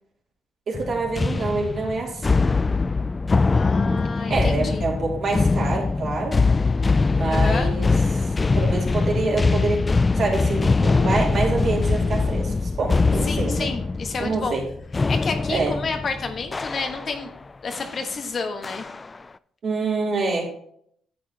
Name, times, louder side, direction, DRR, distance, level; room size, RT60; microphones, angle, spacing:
sound 1, 0.7-17.3 17.7-18.0 18.6-19.2, left 3 dB, 25° left, 0.3 m, -22 dB
voice 1, 0.7-2.4 4.3-6.4 7.1-8.3 8.5-9.8 10.1-13.7 14.2-14.6 15.5-15.7 19.6-20.4, right 3 dB, 55° right, -2 dB, 3.1 m, -26 dB
voice 2, 3.5-4.9 7.2-7.7 13.2-14.6 15.1-17.3 17.6-18.8, left 4 dB, 45° left, 5 dB, 1.2 m, -30 dB
10.5 x 7.6 x 2.9 m, 0.68 s
cardioid pair, 90°, 0 cm